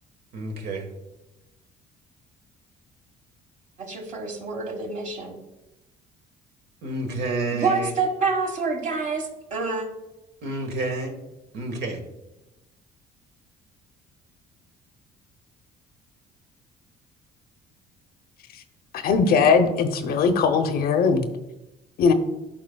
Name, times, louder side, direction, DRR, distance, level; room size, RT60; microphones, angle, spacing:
voice 1, 0.3-0.9 6.8-7.9 10.4-11.1 11.5-12.0, right 2 dB, 75° right, 3 dB, 1.3 m, -29 dB
voice 2, 3.8-5.4 7.5-9.9, right 4 dB, 50° right, 3 dB, 1.4 m, -27 dB
voice 3, 18.9-21.3 22.0-22.1, left 5 dB, 65° left, 8 dB, 0.7 m, -20 dB
12.0 x 4.0 x 2.2 m, 0.99 s
cardioid pair, 110°, 17 cm